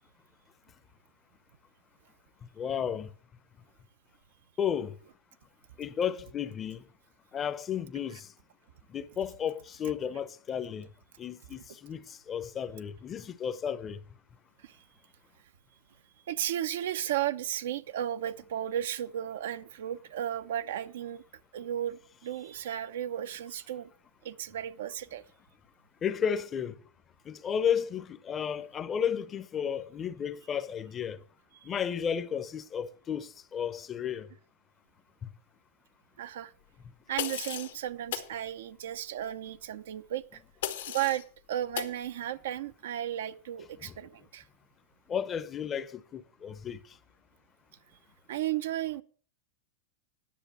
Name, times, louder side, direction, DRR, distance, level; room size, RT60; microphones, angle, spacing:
voice 1, 2.6-3.1 4.6-5.0 5.8-6.8 7.3-8.3 8.9-10.9 11.2-14.0 26.0-26.8 27.3-31.2 31.6-34.3 35.2-35.3 43.8-43.9 45.1-46.8, left 8 dB, 25° left, 0.6 m, -33 dB
voice 2, 16.3-21.2 21.5-23.9 24.2-25.2 31.6-31.7 36.2-36.5 37.1-40.4 40.9-41.2 41.5-44.4 48.3-49.0, right 11 dB, 80° right, 0.6 m, -34 dB
sound 1, 37.2-37.8 38.1-38.3 40.6-41.2 41.7-42.0, left 11 dB, 85° left, 1.4 m, -35 dB
10.5 x 6.7 x 6.7 m
supercardioid pair, 130°, 0 cm